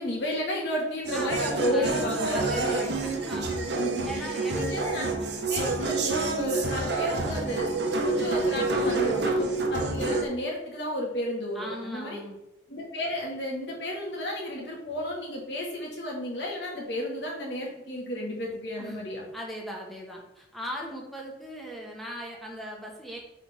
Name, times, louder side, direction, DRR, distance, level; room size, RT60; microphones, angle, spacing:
voice 1, 0.0-3.1 3.4-5.0 5.5-7.7 8.0-12.2 12.7-19.3, left 1 dB, 70° left, -2 dB, 2.0 m, -32 dB
sound 1, 1.1-10.3, right 3 dB, 65° right, 1.0 m, -28 dB
voice 2, 1.7-3.4 4.0-4.6 5.2-5.5 9.1-9.5 11.5-12.4 18.8-19.1 19.3-23.2, equal, ahead, -2 dB, 1.3 m, -38 dB
8.1 x 4.1 x 3.6 m, 0.87 s
head